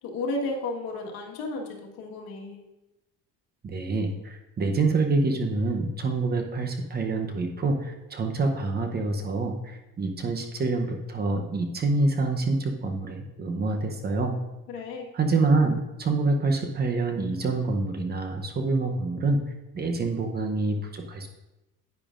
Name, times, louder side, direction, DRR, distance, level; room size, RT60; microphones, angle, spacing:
voice 1, 0.0-2.6 14.7-15.1, left 2 dB, 80° left, 0 dB, 1.7 m, -33 dB
voice 2, 3.6-14.4 15.1-19.4 19.7-21.3, right 3 dB, 25° right, 4 dB, 0.8 m, -26 dB
10.0 x 9.2 x 2.5 m, 0.99 s
cardioid pair, 150°, 37 cm